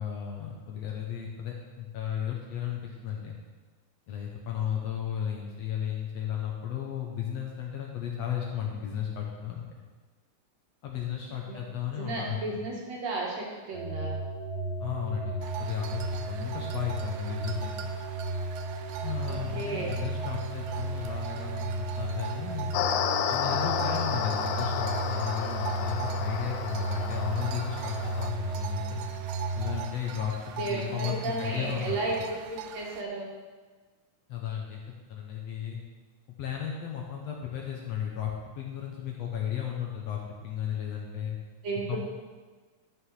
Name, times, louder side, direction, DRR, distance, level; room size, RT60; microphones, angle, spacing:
voice 1, 0.0-3.3 4.1-9.6 10.8-12.4 14.8-17.9 19.0-22.7 23.3-29.0 29.6-32.0 34.3-34.8 35.1-35.8 36.4-41.4 41.9-42.0, left 9 dB, 65° left, -1 dB, 1.8 m, -34 dB
voice 2, 12.0-14.2 19.2-20.0 30.6-32.2 32.5-33.3 41.6-42.0, right 3 dB, 60° right, -2 dB, 2.5 m, -33 dB
sound 1, 13.7-29.8, right 3 dB, 30° right, 1.2 m, -34 dB
sound 2, 15.4-33.0, right 9 dB, 80° right, 1.8 m, -43 dB
sound 3, 22.7-28.3, left 8 dB, 85° left, 1.5 m, -31 dB
11.5 x 6.3 x 4.8 m, 1.4 s
omnidirectional pair, 3.7 m